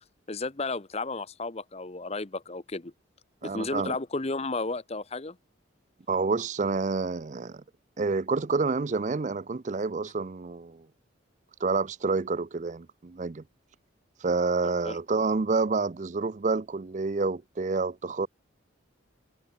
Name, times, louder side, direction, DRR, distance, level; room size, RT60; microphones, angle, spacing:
voice 1, 0.3-2.9 3.4-5.4 14.6-15.0, left 3 dB, 30° left, 0.9 m, -33 dB
voice 2, 3.4-4.0 6.1-7.6 8.0-10.8 11.6-13.4 14.2-18.3, right 4 dB, 35° right, 0.5 m, -28 dB
head